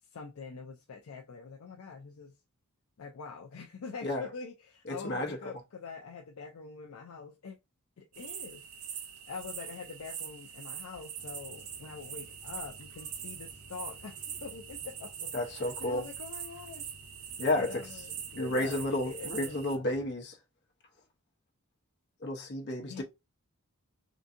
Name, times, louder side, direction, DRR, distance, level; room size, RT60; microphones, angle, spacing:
voice 1, 0.1-2.3 3.0-7.6 8.0-16.9 17.6-19.9 22.8-23.0, left 5 dB, 70° left, 0.5 m, -45 dB
voice 2, 4.9-5.4 15.3-16.1 17.4-17.7 18.4-20.4 22.2-23.0, left 1 dB, 50° left, 0.9 m, -31 dB
sound 1, 8.1-19.8, right 8 dB, 70° right, 0.6 m, -43 dB
sound 2, 11.2-20.1, equal, 25° left, 1.4 m, -57 dB
3.7 x 2.6 x 2.6 m
head